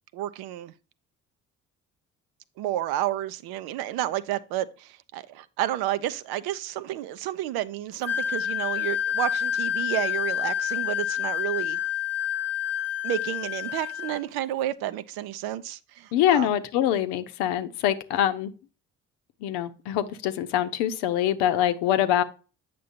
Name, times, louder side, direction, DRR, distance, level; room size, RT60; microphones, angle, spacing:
voice 1, 0.1-0.7 2.6-11.8 13.0-16.5, right 13 dB, 65° right, 0.7 m, -31 dB
Wind instrument woodwind instrument, 8.0-14.2, left 10 dB, 40° left, 0.7 m, -28 dB
voice 2, 16.1-18.5 19.4-22.2, left 11 dB, 70° left, 0.8 m, -24 dB
8.3 x 6.1 x 2.6 m
hypercardioid pair, 50°, 40 cm